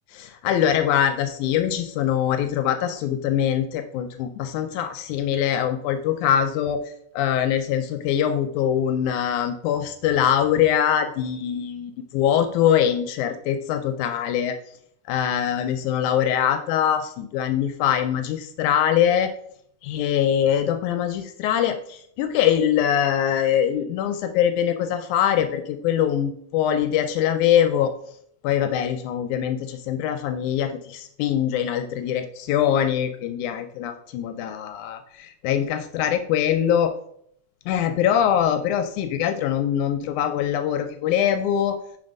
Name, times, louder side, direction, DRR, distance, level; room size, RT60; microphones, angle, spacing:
voice 1, 0.1-6.8 7.1-14.6 15.1-19.3 19.8-27.9 28.4-36.9 37.7-41.8, left 9 dB, 80° left, 7 dB, 1.9 m, -23 dB
5.6 x 4.3 x 5.2 m, 0.68 s
omnidirectional pair, 3.6 m